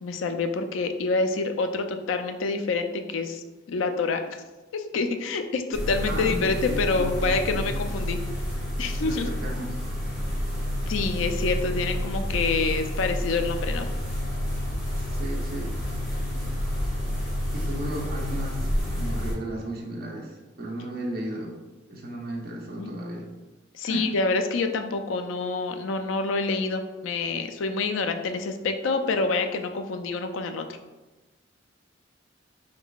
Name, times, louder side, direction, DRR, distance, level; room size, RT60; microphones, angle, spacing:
voice 1, 0.0-4.2 4.7-8.2 8.8-9.3 10.9-13.9 22.8-22.9 23.7-30.7, left 3 dB, 85° left, 7 dB, 0.4 m, -27 dB
sound 1, 5.7-19.3, equal, ahead, 1.4 m, -29 dB
voice 2, 6.1-7.2 7.5-7.9 9.0-9.8 15.0-15.7 16.2-16.4 17.5-21.6 21.9-23.3 23.8-24.1, right 1 dB, 50° right, -1 dB, 0.8 m, -35 dB
4.1 x 3.7 x 2.3 m, 1.1 s
head